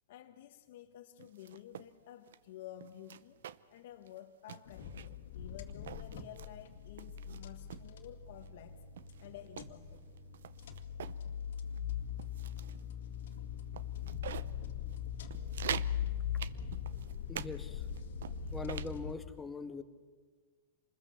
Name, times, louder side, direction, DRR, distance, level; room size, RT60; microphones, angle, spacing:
voice 1, 0.1-3.4 3.7-8.8 9.2-10.1, left 12 dB, 70° left, 1.3 m, -52 dB
sound 1, 1.2-1.9 2.3-2.4 2.8-3.8 4.1-4.2 4.5-5.2 5.7-6.5 7.0-7.9 8.4-8.5 9.0-11.2 11.6-11.8 12.2-12.8 13.3-13.4 13.7-14.5 14.9-15.0 15.3-16.0 16.4-17.5 17.8-18.9, right 9 dB, 85° right, 0.7 m, -44 dB
sound 2, 4.7-19.1, left 8 dB, 85° left, 2.1 m, -41 dB
voice 2, 17.3-17.9 18.5-19.8, left 4 dB, 10° left, 1.5 m, -42 dB
27.0 x 21.0 x 7.0 m
supercardioid pair, 140°, 0 cm